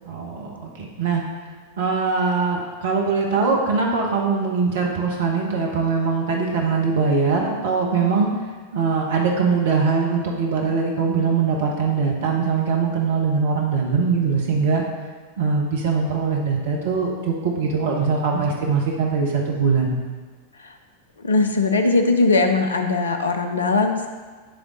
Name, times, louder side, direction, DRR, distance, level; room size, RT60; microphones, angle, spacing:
voice 1, 0.1-1.2 1.8-8.3 8.7-14.8 15.4-19.9, right 5 dB, 60° right, 0 dB, 1.1 m, -22 dB
voice 2, 21.2-24.1, left 3 dB, 70° left, 6 dB, 0.7 m, -20 dB
10.5 x 3.7 x 3.9 m, 1.5 s
figure-of-eight pair, 90°, 0 cm